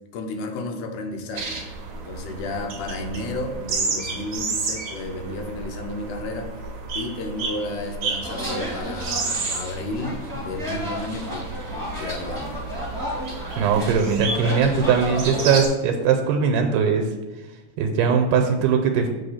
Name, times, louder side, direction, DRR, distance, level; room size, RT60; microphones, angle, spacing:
voice 1, 0.1-1.6 1.9-6.5 6.9-12.7, left 2 dB, 80° left, 3 dB, 2.3 m, -32 dB
sound 1, 1.3-15.7, right 3 dB, 65° right, 1.3 m, -32 dB
sound 2, 8.2-15.6, left 1 dB, 10° right, 1.2 m, -32 dB
voice 2, 13.6-17.1 17.8-19.1, right 6 dB, 85° right, 3 dB, 2.3 m, -20 dB
7.0 x 3.4 x 5.6 m, 1.2 s
omnidirectional pair, 3.6 m